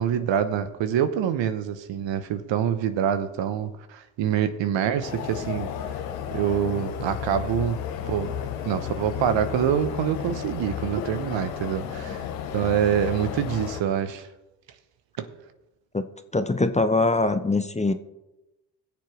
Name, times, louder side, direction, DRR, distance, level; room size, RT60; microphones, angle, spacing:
voice 1, 0.0-5.7 6.3-8.3 8.7-12.2 12.5-14.3 15.2-15.3, right 9 dB, 65° right, 11 dB, 1.0 m, -26 dB
sound 1, 5.0-13.8, left 9 dB, 85° left, 0.9 m, -33 dB
voice 2, 16.3-17.9, left 2 dB, 15° left, 10 dB, 0.7 m, -23 dB
19.5 x 6.9 x 3.2 m, 0.98 s
hypercardioid pair, 45°, 49 cm